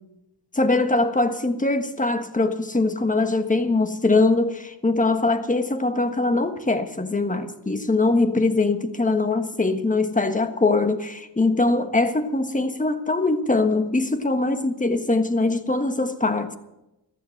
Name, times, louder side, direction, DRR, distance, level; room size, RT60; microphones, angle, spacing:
voice 1, 0.5-16.5, left 2 dB, 20° left, 1.4 m, -22 dB
14.5 x 12.5 x 6.5 m
cardioid pair, 80°, 42 cm